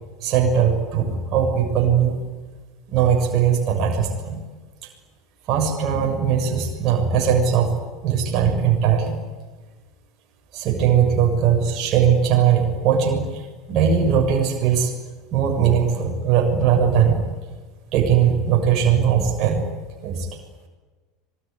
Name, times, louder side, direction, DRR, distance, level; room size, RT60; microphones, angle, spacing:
voice 1, 0.2-2.2 2.9-4.4 5.5-7.7 8.0-9.2 10.5-13.4 13.7-14.9 15.3-17.2 17.9-19.6 20.0-20.3, right 7 dB, 45° right, 1 dB, 6.8 m, -19 dB
25.5 x 22.5 x 9.6 m, 1.4 s
figure-of-eight pair, 75°, 0 cm